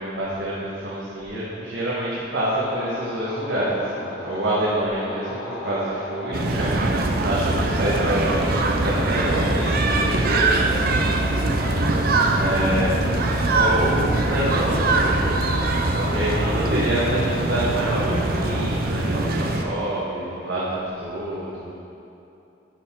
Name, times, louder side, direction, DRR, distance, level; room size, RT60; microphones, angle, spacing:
voice 1, 0.0-6.9 7.2-13.0 13.5-15.4 15.8-21.7, right 1 dB, 75° right, -8 dB, 1.3 m, -27 dB
sound 1, 2.4-18.8, left 2 dB, 85° left, 1.4 m, -35 dB
sound 2, 6.3-19.6, right 2 dB, 55° right, 0.6 m, -22 dB
11.0 x 4.6 x 3.7 m, 2.8 s
head